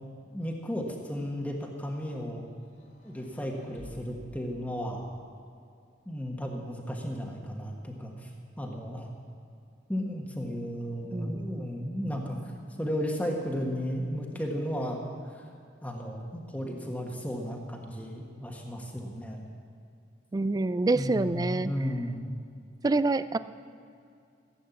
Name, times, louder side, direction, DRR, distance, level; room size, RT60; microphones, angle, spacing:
voice 1, 0.3-2.4 3.0-5.1 6.0-8.3 8.6-9.1 9.9-12.4 12.8-15.0 15.2-15.5 15.8-19.4 20.9-22.2, equal, 10° left, 0 dB, 1.4 m, -34 dB
sound 1, 2.6-5.3 6.2-7.1, equal, 70° left, 2.2 m, -54 dB
voice 2, 11.1-11.7 20.3-21.7 22.8-23.4, right 2 dB, 20° right, 14 dB, 0.3 m, -27 dB
15.5 x 8.5 x 7.1 m, 2.5 s
head